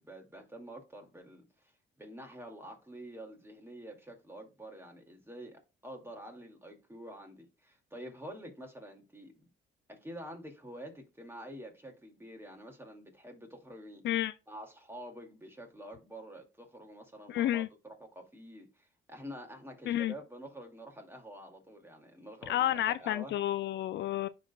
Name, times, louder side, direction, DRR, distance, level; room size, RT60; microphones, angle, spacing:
voice 1, 0.0-1.7 2.0-9.5 9.9-14.0 14.5-23.3, equal, 10° right, 2.3 m, -48 dB
voice 2, 17.3-17.7 19.9-20.1 22.5-24.3, left 13 dB, 65° left, 0.4 m, -30 dB
10.5 x 3.9 x 2.3 m
cardioid pair, 90°, 20 cm